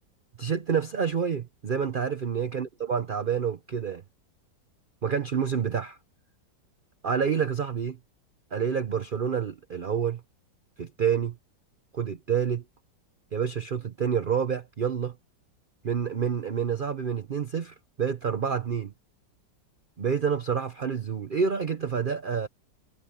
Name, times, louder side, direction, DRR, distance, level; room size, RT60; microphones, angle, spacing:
voice 1, 0.4-4.0 5.0-6.0 7.0-8.0 8.5-10.2 10.8-11.4 11.9-12.6 13.3-15.2 15.8-18.9 20.0-22.5, right 7 dB, 45° right, 0.6 m, -28 dB
omnidirectional pair, 2.0 m